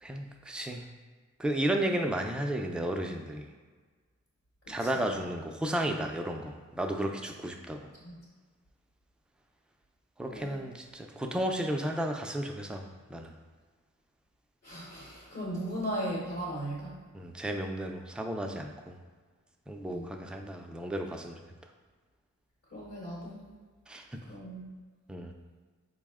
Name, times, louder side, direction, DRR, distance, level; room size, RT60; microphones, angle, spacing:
voice 1, 0.0-0.8 1.4-3.5 4.7-7.9 10.2-12.9 13.1-13.3 17.1-18.9 19.7-21.4 23.9-24.2 25.1-25.3, right 1 dB, 5° right, 3 dB, 0.3 m, -33 dB
voice 2, 4.6-5.0 8.0-8.2 10.3-10.6 14.6-17.0 19.8-20.1 22.7-23.4 24.3-24.6, equal, 50° left, -6 dB, 1.0 m, -37 dB
4.2 x 2.1 x 3.5 m, 1.5 s
cardioid pair, 55°, 30 cm